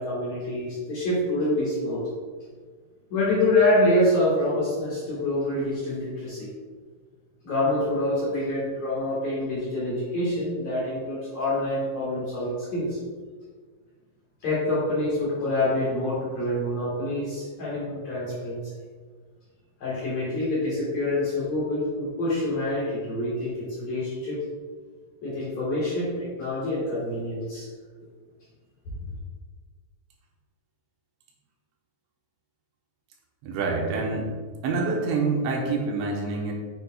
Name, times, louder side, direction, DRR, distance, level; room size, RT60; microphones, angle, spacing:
voice 1, 0.0-2.1 3.1-6.5 7.4-13.0 14.4-18.6 19.8-24.4 25.2-27.7, left 1 dB, 55° left, -8 dB, 2.2 m, -26 dB
voice 2, 33.4-34.3 34.6-36.5, right 3 dB, 85° right, -1 dB, 3.4 m, -26 dB
8.5 x 6.7 x 2.4 m, 1.5 s
omnidirectional pair, 5.2 m